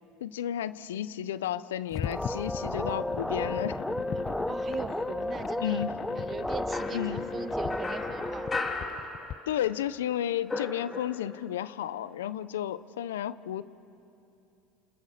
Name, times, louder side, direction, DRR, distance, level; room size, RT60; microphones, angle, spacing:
voice 1, 0.2-3.8 5.6-6.0 6.9-7.3 9.5-13.6, left 11 dB, 90° left, 16 dB, 0.7 m, -32 dB
sound 1, 1.9-9.4, left 10 dB, 45° left, 0.5 m, -39 dB
sound 2, 2.0-8.6, left 1 dB, 5° left, 0.8 m, -33 dB
voice 2, 4.4-5.8 6.1-8.5, right 6 dB, 35° right, 9 dB, 1.7 m, -40 dB
sound 3, 6.7-9.7 10.0-11.5, left 3 dB, 20° left, 3.6 m, -36 dB
29.0 x 28.0 x 6.7 m, 2.8 s
hypercardioid pair, 90°, 0 cm